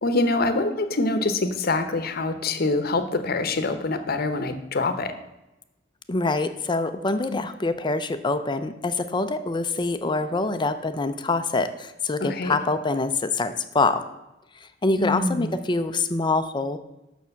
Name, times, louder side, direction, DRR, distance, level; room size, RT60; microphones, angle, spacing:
voice 1, 0.0-5.2 7.3-7.4 12.2-12.5 15.0-15.6, left 2 dB, 55° left, 9 dB, 0.9 m, -25 dB
voice 2, 6.1-14.0 14.6-16.8, left 3 dB, 25° left, 10 dB, 0.5 m, -25 dB
6.9 x 6.1 x 7.0 m, 0.94 s
head